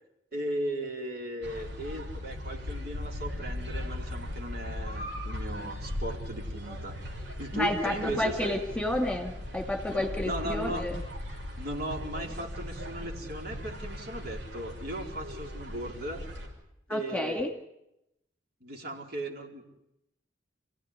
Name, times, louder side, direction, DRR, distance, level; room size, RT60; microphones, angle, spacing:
voice 1, 0.3-7.0 7.4-8.6 10.2-10.9 11.6-16.2 16.9-17.4 18.6-19.6, right 1 dB, 55° right, 1 dB, 4.4 m, -37 dB
sound 1, 1.4-16.5, left 1 dB, 80° right, 6.3 m, -38 dB
voice 2, 7.5-11.0 16.9-17.5, left 1 dB, 5° left, 3 dB, 2.4 m, -30 dB
28.0 x 16.5 x 9.9 m, 0.85 s
head